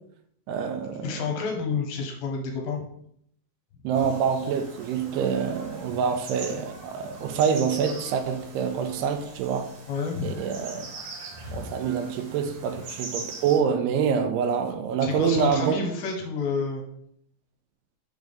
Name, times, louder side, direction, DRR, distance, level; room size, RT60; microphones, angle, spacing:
voice 1, 0.5-1.3 3.8-9.7 10.2-10.9 11.5-15.8, right 7 dB, 85° right, 2.6 m, -26 dB
voice 2, 1.0-2.8 9.9-10.4 15.0-16.8, left 5 dB, 75° left, 2.6 m, -29 dB
sound 1, 3.9-13.6, right 2 dB, 60° right, 1.9 m, -41 dB
6.5 x 3.5 x 5.1 m
omnidirectional pair, 4.6 m